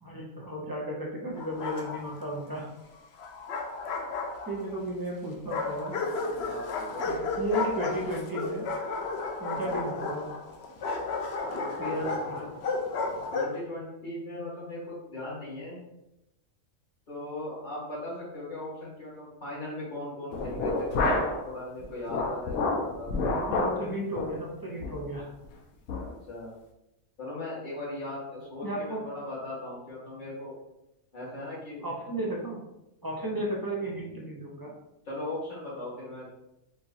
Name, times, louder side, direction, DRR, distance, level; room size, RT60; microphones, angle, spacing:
voice 1, 0.0-2.6 4.5-6.0 7.0-8.7 9.4-10.3 11.8-12.1 23.5-25.3 28.6-29.1 31.8-32.6 33.0-34.7, right 1 dB, 25° right, -3 dB, 0.5 m, -34 dB
Bark, 1.4-2.3 3.2-4.8 5.5-13.6, left 3 dB, 60° left, 0.7 m, -33 dB
voice 2, 6.4-7.1 9.6-9.8 11.4-12.5 13.3-15.8 17.1-21.2 21.4-23.2 26.0-26.6 27.2-30.5 31.1-31.8 35.1-36.4, left 1 dB, 35° left, -7 dB, 1.7 m, -38 dB
sound 1, 20.3-21.5 21.8-23.8 24.2-24.3 24.8-25.0 25.4-25.5 25.9-26.1, left 2 dB, 85° left, 1.1 m, -29 dB
4.5 x 3.2 x 2.8 m, 0.88 s
omnidirectional pair, 1.5 m